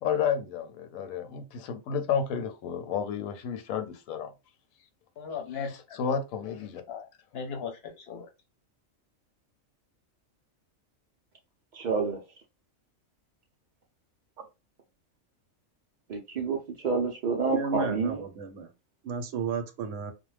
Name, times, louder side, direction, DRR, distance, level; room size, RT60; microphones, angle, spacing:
voice 1, 0.0-4.3 6.0-6.8, left 7 dB, 85° left, 1.0 m, -31 dB
voice 2, 5.2-6.0 6.9-8.3, left 5 dB, 55° left, 0.8 m, -38 dB
voice 3, 11.7-12.2 16.1-18.2, right 4 dB, 90° right, 0.4 m, -29 dB
voice 4, 17.5-18.7 19.0-20.1, right 5 dB, 70° right, 0.9 m, -33 dB
2.4 x 2.1 x 3.1 m
omnidirectional pair, 1.4 m